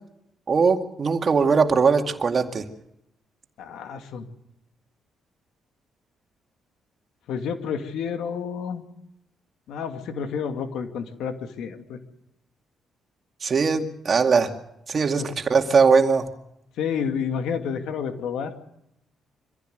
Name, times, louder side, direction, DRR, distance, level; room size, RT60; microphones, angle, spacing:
voice 1, 0.5-2.6 13.4-14.5 14.9-16.3, right 5 dB, 45° right, 5 dB, 2.2 m, -20 dB
voice 2, 3.6-4.2 7.3-8.8 9.7-12.0 15.2-15.3 16.8-18.5, left 7 dB, 80° left, 6 dB, 2.4 m, -30 dB
25.0 x 15.5 x 7.9 m, 0.82 s
cardioid pair, 90°, 0 cm